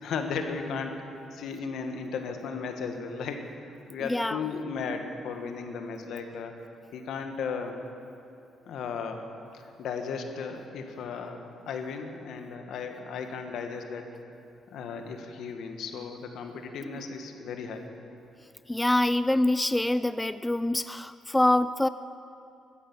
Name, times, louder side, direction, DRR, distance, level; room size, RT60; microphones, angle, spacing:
voice 1, 0.0-6.5 6.9-7.7 8.7-9.3 9.5-14.1 14.7-17.9, left 5 dB, 75° left, 5 dB, 1.4 m, -35 dB
voice 2, 4.0-4.4 16.8-17.0 18.7-21.9, left 1 dB, 10° left, 13 dB, 0.3 m, -25 dB
13.5 x 10.0 x 7.1 m, 2.7 s
cardioid pair, 90°, 0 cm